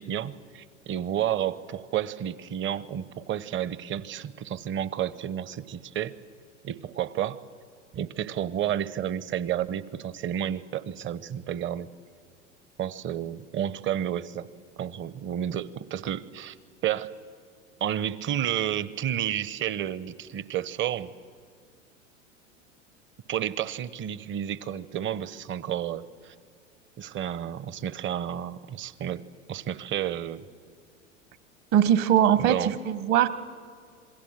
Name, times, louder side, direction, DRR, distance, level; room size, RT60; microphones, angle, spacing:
voice 1, 0.0-6.2 6.6-7.4 7.9-11.9 12.8-14.5 14.8-16.6 16.8-17.1 17.8-21.1 23.3-26.3 27.0-29.2 29.5-30.4 32.4-32.8, right 10 dB, 30° right, 18 dB, 0.9 m, -31 dB
voice 2, 31.7-33.3, right 10 dB, 45° right, 14 dB, 1.4 m, -21 dB
27.0 x 21.5 x 7.5 m, 2.1 s
hypercardioid pair, 90°, 38 cm